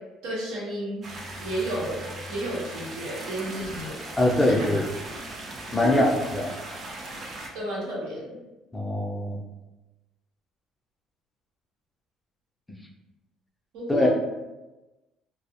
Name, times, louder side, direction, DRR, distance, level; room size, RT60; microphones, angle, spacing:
voice 1, 0.2-1.1 1.4-4.0 4.4-4.8 5.8-6.1 7.5-8.3 13.7-14.1, right 1 dB, 90° right, -5 dB, 0.8 m, -32 dB
sound 1, 1.0-7.5, right 1 dB, 45° right, 0.5 m, -38 dB
voice 2, 4.2-4.8 5.7-6.5 8.7-9.4 13.9-14.1, left 1 dB, 15° left, -1 dB, 0.4 m, -23 dB
2.2 x 2.0 x 2.8 m, 1.1 s
cardioid pair, 100°, 0 cm